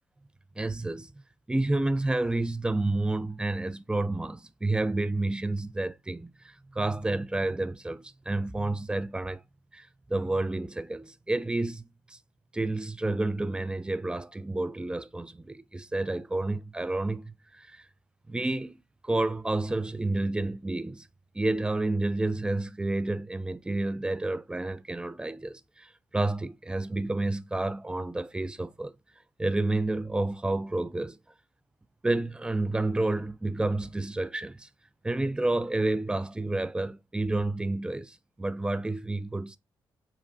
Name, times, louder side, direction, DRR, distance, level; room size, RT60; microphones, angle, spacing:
voice 1, 0.6-1.1 1.5-9.4 9.7-12.2 12.5-17.8 18.3-18.8 19.0-21.1 21.3-28.9 29.4-31.2 32.0-34.7 35.0-39.6, right 2 dB, 10° right, 0.3 m, -30 dB
4.9 x 2.1 x 2.6 m
cardioid pair, 65°, 8 cm